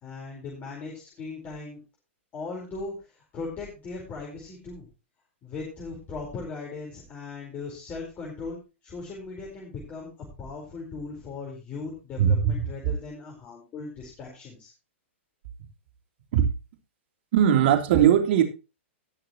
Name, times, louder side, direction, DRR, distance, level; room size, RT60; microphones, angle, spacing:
voice 1, 0.0-1.8 2.3-4.9 5.4-10.1 10.4-14.7, left 4 dB, 25° left, -2 dB, 4.5 m, -38 dB
voice 2, 12.2-12.6 16.3-16.4 17.3-18.4, right 9 dB, 55° right, 5 dB, 3.3 m, -19 dB
18.5 x 6.9 x 3.0 m, 0.29 s
hypercardioid pair, 135°, 7 cm